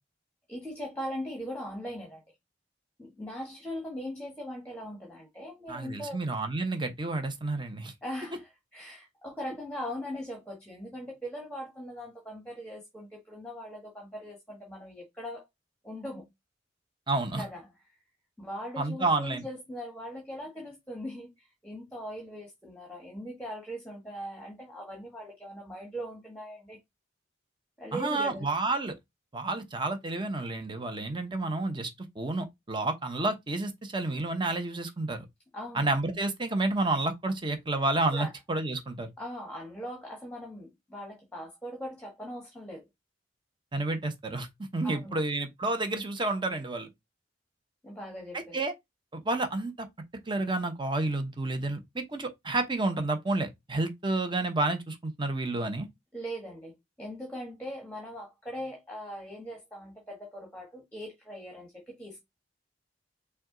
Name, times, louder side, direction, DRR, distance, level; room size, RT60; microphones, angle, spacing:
voice 1, 0.5-2.2 3.0-6.2 8.0-15.5 15.8-16.3 17.4-17.7 18.4-26.8 27.8-28.5 35.5-35.9 38.1-38.3 39.2-42.9 44.8-45.2 47.8-48.6 56.1-62.2, equal, 5° left, 1.3 m, -40 dB
voice 2, 5.7-7.9 17.1-17.4 18.8-19.5 27.9-28.9 29.3-31.9 32.2-35.3 35.7-39.1 43.7-44.5 44.7-46.9 48.3-48.7 49.1-49.9 50.3-55.9, right 2 dB, 25° right, 0.8 m, -30 dB
5.8 x 2.3 x 3.8 m
head